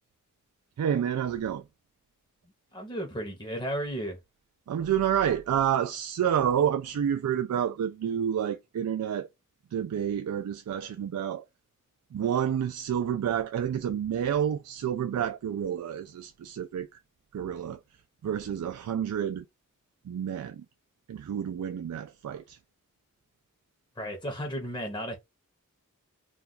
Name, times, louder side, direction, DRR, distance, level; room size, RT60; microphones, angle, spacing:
voice 1, 0.8-1.6 4.7-9.3 9.7-11.4 12.1-16.9 17.3-17.8 18.2-19.4 20.0-20.6 21.1-22.6, right 9 dB, 85° right, 0.3 m, -29 dB
voice 2, 2.7-4.2 24.0-25.2, equal, 20° left, 0.8 m, -34 dB
2.3 x 2.3 x 3.8 m
head